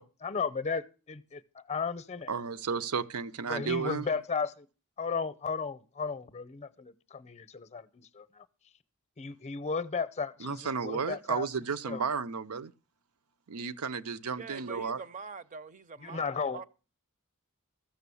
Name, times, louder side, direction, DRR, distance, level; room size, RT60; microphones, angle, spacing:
voice 1, 0.0-1.4 1.7-2.3 3.5-4.7 5.0-8.4 9.2-11.5 11.8-12.0 16.0-16.6, left 5 dB, 30° left, 0.6 m, -34 dB
voice 2, 2.3-4.1 10.4-12.7 13.5-15.0, right 5 dB, 90° right, 0.6 m, -33 dB
voice 3, 14.3-16.6, right 5 dB, 35° right, 0.5 m, -44 dB
14.5 x 6.9 x 6.9 m
head